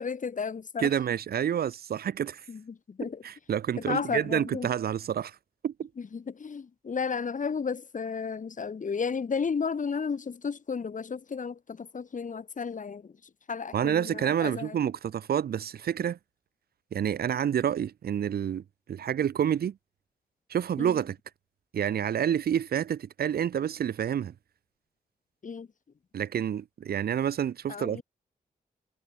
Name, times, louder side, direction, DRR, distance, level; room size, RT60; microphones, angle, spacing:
voice 1, 0.0-0.9 2.5-3.2 3.9-4.7 6.0-13.1 13.5-14.8 20.8-21.0 25.4-25.7 27.7-28.0, left 5 dB, 55° left, 3.9 m, -33 dB
voice 2, 0.8-2.4 3.2-5.4 5.6-5.9 13.7-16.2 16.9-18.6 18.9-19.8 20.5-21.2 21.7-24.3 26.1-28.0, right 9 dB, 85° right, 2.3 m, -28 dB
cardioid pair, 60°, 16 cm